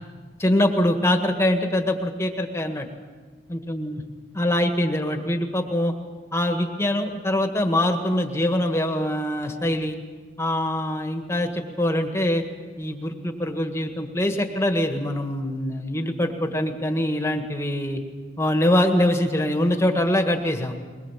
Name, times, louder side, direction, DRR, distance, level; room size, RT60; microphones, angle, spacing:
voice 1, 0.4-2.9 3.5-4.0 4.4-5.9 6.3-10.0 10.4-12.4 12.8-18.0 18.4-20.7, left 1 dB, 15° left, 5 dB, 1.7 m, -23 dB
22.5 x 20.5 x 7.4 m, 1.4 s
head